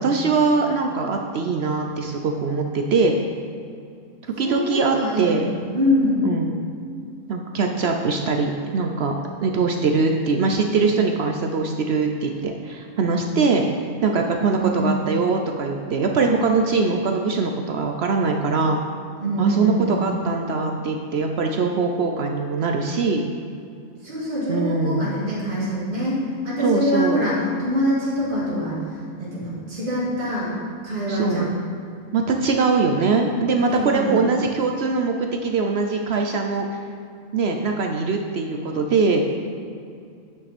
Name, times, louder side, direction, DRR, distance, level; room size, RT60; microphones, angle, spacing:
voice 1, 0.0-3.1 4.4-5.5 6.2-6.7 7.3-9.1 9.4-13.6 14.0-18.8 19.4-23.2 24.5-25.1 26.6-27.3 31.1-31.5 32.1-36.7 37.3-39.2, right 4 dB, 60° right, 3 dB, 0.7 m, -22 dB
voice 2, 4.4-6.3 14.4-14.9 19.2-20.1 24.0-30.5 30.8-31.5 33.8-34.2, equal, 35° right, -9 dB, 2.5 m, -24 dB
9.0 x 6.1 x 4.2 m, 2.4 s
omnidirectional pair, 1.5 m